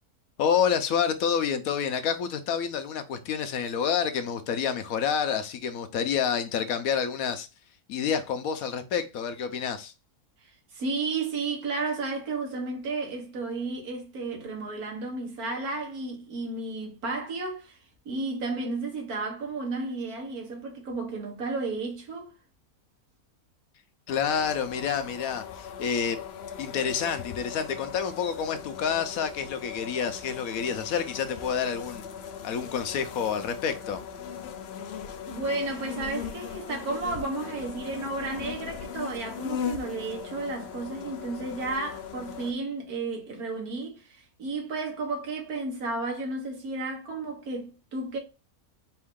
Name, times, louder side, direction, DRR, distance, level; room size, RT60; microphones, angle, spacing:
voice 1, 0.4-7.5 7.9-9.9 24.1-26.2 26.6-32.1 32.4-34.0, left 7 dB, 75° left, 1.1 m, -28 dB
voice 2, 10.4-17.8 18.1-22.3 35.3-48.2, right 3 dB, 85° right, 1.7 m, -33 dB
sound 1, 24.1-42.5, left 7 dB, 60° left, 0.7 m, -39 dB
4.5 x 2.6 x 3.6 m
omnidirectional pair, 1.5 m